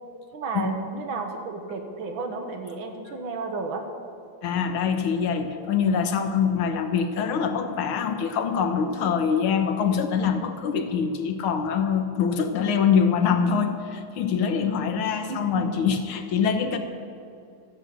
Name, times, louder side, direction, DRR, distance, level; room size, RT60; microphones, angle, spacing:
voice 1, 0.3-3.9 15.3-15.8, right 3 dB, 75° right, 5 dB, 1.8 m, -32 dB
voice 2, 4.4-16.8, left 6 dB, 90° left, 6 dB, 1.9 m, -24 dB
13.0 x 7.5 x 8.1 m, 2.5 s
omnidirectional pair, 2.3 m